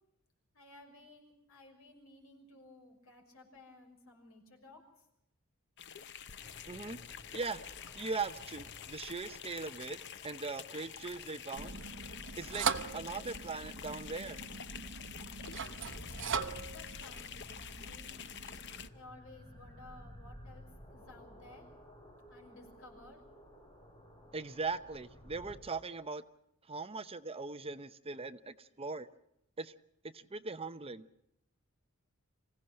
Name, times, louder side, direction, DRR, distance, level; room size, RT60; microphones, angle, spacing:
voice 1, 0.5-4.8 16.7-18.2 18.9-20.6 20.9-21.6 22.3-23.2, left 2 dB, 75° left, 1 dB, 6.1 m, -56 dB
sound 1, 5.8-18.9, left 8 dB, 55° left, 0.8 m, -48 dB
sound 2, 6.4-25.6, equal, 20° left, 4.2 m, -56 dB
voice 2, 6.7-7.0 7.3-7.6 7.9-10.0 10.2-11.8 12.4-14.4 24.3-26.2 26.7-29.1 29.6-29.7 30.0-31.1, right 4 dB, 25° right, 12 dB, 0.7 m, -40 dB
sound 3, 11.6-18.9, right 6 dB, 60° right, 1.1 m, -40 dB
26.0 x 16.5 x 7.6 m, 0.82 s
head